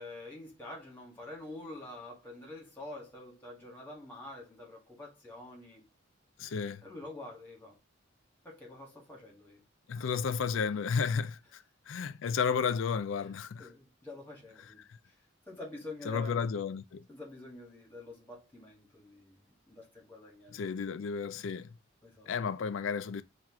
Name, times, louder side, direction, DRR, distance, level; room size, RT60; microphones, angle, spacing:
voice 1, 0.0-5.9 6.8-7.8 8.4-9.6 13.6-14.8 15.5-16.5 17.1-20.6 22.0-22.3, left 2 dB, 10° left, 1.5 m, -47 dB
voice 2, 6.4-6.8 9.9-13.7 14.6-15.0 16.0-17.1 20.5-21.8 22.3-23.2, left 6 dB, 70° left, 0.4 m, -33 dB
4.4 x 2.5 x 3.5 m
head